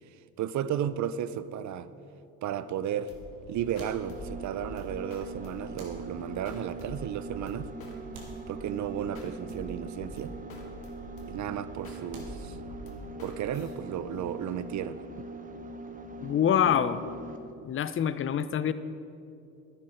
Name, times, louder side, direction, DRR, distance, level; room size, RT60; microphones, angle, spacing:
voice 1, 0.4-1.9 2.4-3.1 3.5-7.7 8.5-10.3 11.3-12.6 13.2-15.3, right 9 dB, 50° right, 15 dB, 0.6 m, -33 dB
sound 1, 1.9-2.5 3.7-4.7 5.7-6.6 8.1-9.2 12.1-12.9, right 1 dB, 65° right, 2.8 m, -50 dB
sound 2, 3.1-13.7, equal, 70° left, 2.2 m, -46 dB
sound 3, 4.0-17.5, right 2 dB, 20° right, 1.0 m, -43 dB
voice 2, 16.2-17.0 17.6-18.7, left 9 dB, 35° left, 14 dB, 0.6 m, -25 dB
11.5 x 10.5 x 5.0 m, 2.7 s
supercardioid pair, 80°, 38 cm